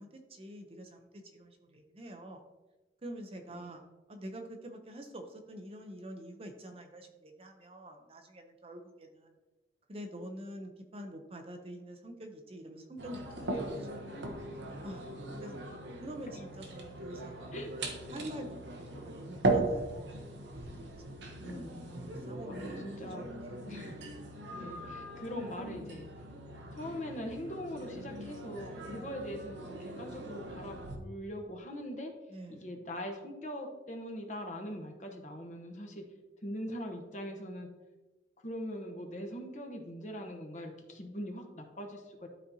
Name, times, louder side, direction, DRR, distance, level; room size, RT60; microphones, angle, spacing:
voice 1, 0.0-2.4 3.0-3.8 4.1-9.3 9.9-14.0 14.8-15.6 16.0-17.6 18.1-20.2 20.5-21.2 21.9-23.5 24.5-24.9 32.3-32.7, right 1 dB, 30° right, 5 dB, 0.6 m, -47 dB
sound 1, 13.0-31.0, right 2 dB, 75° right, 1.0 m, -39 dB
voice 2, 21.4-22.0 22.5-23.2 23.7-24.0 24.5-26.1 26.7-32.1 32.5-36.0 36.4-37.7 38.4-42.3, equal, 40° left, 3 dB, 1.0 m, -42 dB
12.0 x 4.2 x 2.7 m, 1.1 s
head